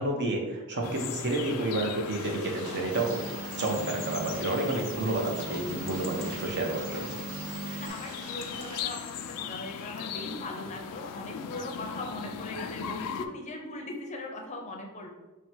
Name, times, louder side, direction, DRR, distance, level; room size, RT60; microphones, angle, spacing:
voice 1, 0.0-7.1, right 2 dB, 50° right, 1 dB, 0.7 m, -30 dB
sound 1, 0.8-13.3, left 8 dB, 85° left, 0.3 m, -39 dB
sound 2, 2.1-8.8, right 1 dB, 70° right, 1.2 m, -47 dB
sound 3, 2.9-7.9, right 3 dB, 15° right, 0.8 m, -39 dB
voice 2, 7.8-15.1, left 1 dB, 30° left, 2 dB, 0.5 m, -39 dB
4.4 x 2.1 x 4.4 m, 1.1 s
head